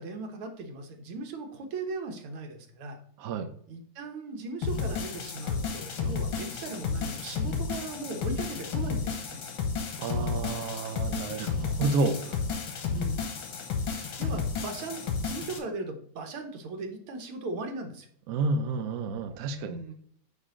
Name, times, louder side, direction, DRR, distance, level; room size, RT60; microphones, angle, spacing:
voice 1, 0.0-3.0 3.7-9.4 12.9-13.3 13.9-18.1 19.6-19.9, right 3 dB, 85° right, 4 dB, 2.0 m, -38 dB
voice 2, 3.2-3.5 10.0-12.4 18.3-19.8, right 3 dB, 65° right, 7 dB, 0.9 m, -30 dB
sound 1, 4.6-15.6, left 5 dB, 70° left, 1.9 m, -32 dB
9.3 x 3.3 x 3.8 m, 0.62 s
omnidirectional pair, 2.3 m